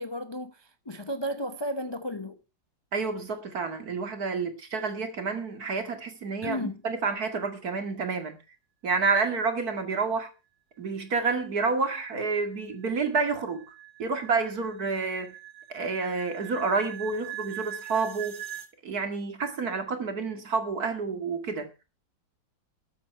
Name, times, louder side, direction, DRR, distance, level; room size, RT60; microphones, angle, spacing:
voice 1, 0.0-2.4 6.4-6.8, equal, 25° left, 0.5 m, -33 dB
voice 2, 2.9-8.4 8.8-10.3 10.8-13.7 14.0-15.3 15.7-18.4 18.8-21.7, right 4 dB, 55° right, 2.5 m, -29 dB
sound 1, 11.5-18.7, right 11 dB, 90° right, 2.0 m, -42 dB
13.5 x 8.3 x 5.8 m
omnidirectional pair, 2.0 m